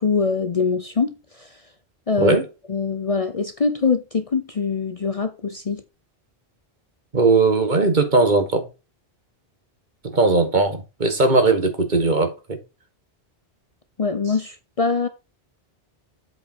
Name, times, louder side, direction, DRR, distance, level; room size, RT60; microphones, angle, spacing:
voice 1, 0.0-1.6 2.1-2.4 2.7-5.8 14.0-15.1, left 5 dB, 40° left, 0.7 m, -23 dB
voice 2, 7.1-8.7 10.0-12.6, right 3 dB, 45° right, 1.6 m, -19 dB
8.0 x 5.0 x 4.4 m
omnidirectional pair, 1.1 m